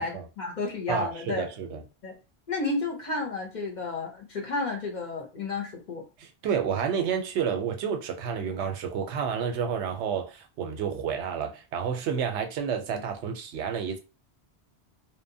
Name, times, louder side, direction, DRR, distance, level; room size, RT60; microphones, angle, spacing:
voice 1, 0.0-1.5 2.0-2.1 2.5-6.0, left 3 dB, 50° left, 0.6 m, -32 dB
voice 2, 0.9-1.8 6.2-14.0, right 7 dB, 90° right, 0.9 m, -30 dB
2.8 x 2.0 x 2.6 m
omnidirectional pair, 1.1 m